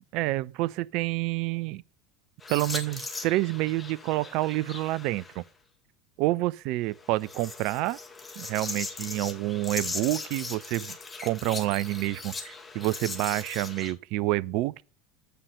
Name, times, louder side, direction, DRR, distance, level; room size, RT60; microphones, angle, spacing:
voice 1, 0.1-1.8 2.5-5.4 6.2-8.0 8.4-11.0 11.2-14.8, right 18 dB, 50° right, 0.4 m, -28 dB
sound 1, 2.4-5.4 7.0-13.9, left 3 dB, 15° left, 2.1 m, -39 dB
8.3 x 5.6 x 6.5 m
figure-of-eight pair, 70°, 0 cm